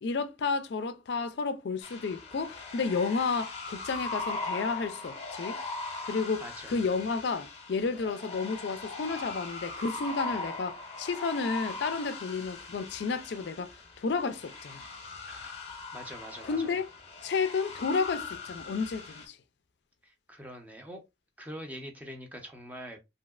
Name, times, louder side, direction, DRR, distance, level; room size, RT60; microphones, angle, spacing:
voice 1, 0.0-5.6 6.1-14.9 16.4-16.8 17.2-19.4, left 4 dB, 70° left, 0.4 m, -31 dB
sound 1, 1.8-19.3, left 3 dB, 35° left, 0.8 m, -40 dB
voice 2, 6.4-6.8 15.3-16.7 20.0-21.0 21.4-23.0, equal, 10° right, 0.6 m, -44 dB
3.1 x 2.8 x 2.3 m
head